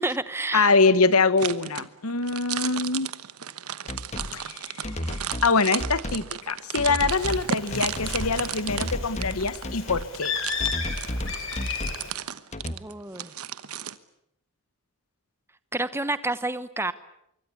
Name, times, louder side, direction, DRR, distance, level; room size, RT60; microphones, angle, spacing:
voice 1, 0.0-0.7 12.7-13.3 15.7-16.9, right 2 dB, 10° right, 14 dB, 1.0 m, -29 dB
voice 2, 0.5-3.1 4.3-10.3, left 4 dB, 80° left, 15 dB, 1.3 m, -24 dB
sound 1, 1.4-14.0, right 9 dB, 85° right, 1.1 m, -35 dB
sound 2, 3.9-4.3 4.8-5.5 5.8-6.3 6.8-7.4 7.7-8.2 8.7-9.4 9.6-10.1 10.6-12.0 12.5-12.8, left 1 dB, 30° left, 1.5 m, -32 dB
Bird, 7.1-12.1, left 5 dB, 60° left, 4.4 m, -34 dB
25.0 x 23.5 x 8.5 m, 0.76 s
head